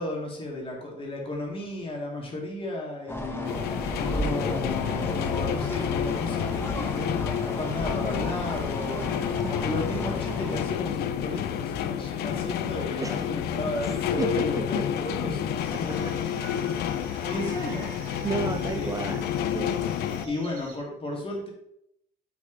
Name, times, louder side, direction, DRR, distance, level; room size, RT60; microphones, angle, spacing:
voice 1, 0.0-3.6 4.0-9.1 9.5-16.7 17.2-17.9 18.7-19.0 20.2-21.5, left 2 dB, 30° left, -1 dB, 2.2 m, -34 dB
sound 1, 3.1-10.7, equal, 15° left, 1.0 m, -34 dB
sound 2, 3.4-20.3, left 9 dB, 75° left, 0.5 m, -30 dB
voice 2, 14.7-15.0 18.2-19.7, right 5 dB, 20° right, 8 dB, 0.4 m, -32 dB
sound 3, 15.6-20.8, right 4 dB, 55° right, 1.6 m, -45 dB
7.9 x 4.2 x 3.9 m, 0.75 s
cardioid pair, 110°, 17 cm